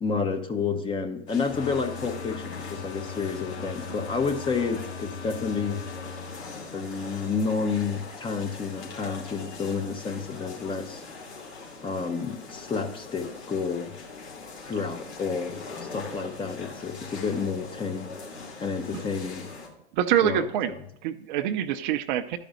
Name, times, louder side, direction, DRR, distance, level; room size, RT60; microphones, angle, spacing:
voice 1, 0.0-5.8 6.7-11.0 11.8-13.9 14.7-18.2 18.6-19.5 20.2-20.5, left 5 dB, 15° left, 6 dB, 0.7 m, -30 dB
sound 1, 1.3-19.7, left 4 dB, 75° left, 2.6 m, -41 dB
sound 2, 1.5-8.0, left 5 dB, 40° left, 3.4 m, -40 dB
voice 2, 19.9-20.7 21.0-22.4, right 11 dB, 45° right, 10 dB, 0.6 m, -25 dB
12.0 x 5.1 x 5.1 m, 0.81 s
hypercardioid pair, 100°, 33 cm